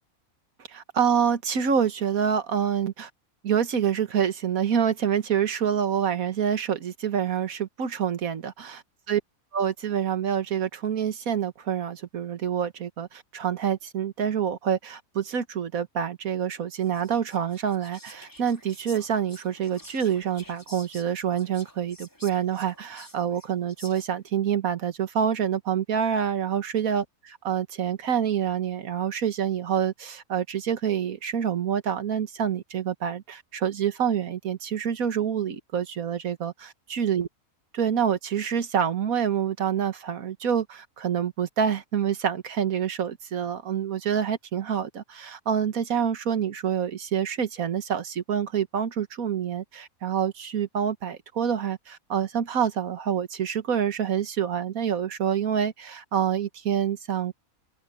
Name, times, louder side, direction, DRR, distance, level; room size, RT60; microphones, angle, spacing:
voice 1, 0.7-3.1 3.4-8.8 9.1-9.2 9.5-37.3 37.7-57.3, right 8 dB, 80° right, 1.7 m, -27 dB
Whispering, 16.8-24.3, left 1 dB, 15° left, 4.8 m, -50 dB
open air
omnidirectional pair, 1.5 m